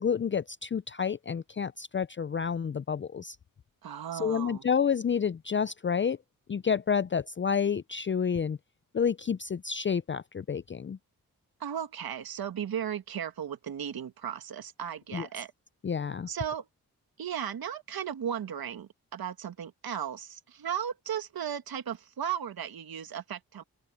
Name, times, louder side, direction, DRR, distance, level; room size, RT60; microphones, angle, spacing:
voice 1, 0.0-3.4 4.1-6.2 6.5-8.6 8.9-11.0 15.1-15.3 15.8-16.3, left 7 dB, 30° left, 0.5 m, -29 dB
voice 2, 3.8-4.6 11.6-15.5 16.3-16.7 17.2-23.6, right 9 dB, 75° right, 1.8 m, -36 dB
open air
supercardioid pair, 45°, 37 cm